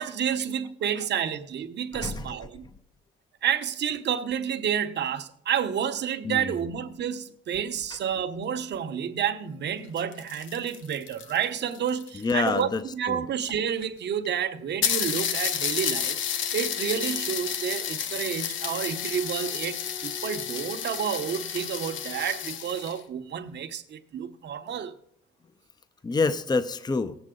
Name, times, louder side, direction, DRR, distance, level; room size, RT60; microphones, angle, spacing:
voice 1, 0.0-2.6 3.4-16.2 16.5-25.0, right 8 dB, 60° right, 1.0 m, -30 dB
voice 2, 1.9-2.3 6.2-6.6 12.1-12.8 13.1-13.3 26.0-27.2, left 4 dB, 20° left, 0.7 m, -27 dB
sound 1, 9.8-12.6 13.5-13.6 13.8-13.9 14.2-14.3 14.8-23.0, left 8 dB, 75° left, 1.0 m, -31 dB
18.0 x 8.0 x 3.8 m
cardioid pair, 90°, 20 cm